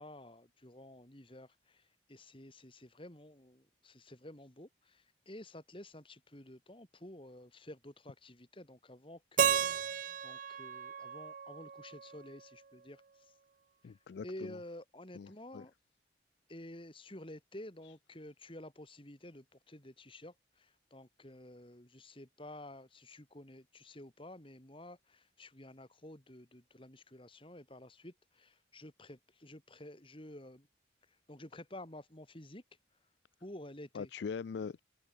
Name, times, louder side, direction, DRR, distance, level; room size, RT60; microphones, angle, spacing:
voice 1, 0.0-13.3 13.8-15.7 16.5-30.7 31.1-32.6 33.4-34.1, left 1 dB, 30° left, 2.7 m, -51 dB
Keyboard (musical), 9.4-12.3, right 8 dB, 45° right, 0.4 m, -34 dB
voice 2, 13.8-14.6 15.1-15.6 33.9-34.8, left 5 dB, 65° left, 0.4 m, -42 dB
open air
head